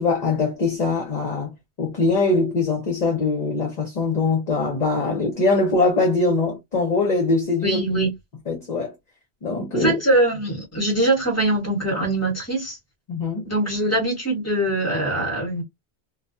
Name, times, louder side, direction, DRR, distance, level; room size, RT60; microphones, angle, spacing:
voice 1, 0.0-7.8 8.5-8.9 9.4-10.0 13.1-13.5, left 3 dB, 45° left, 0.7 m, -22 dB
voice 2, 7.6-8.1 9.7-12.8 13.4-15.6, right 1 dB, 15° left, 1.1 m, -22 dB
2.3 x 2.2 x 2.5 m
omnidirectional pair, 1.1 m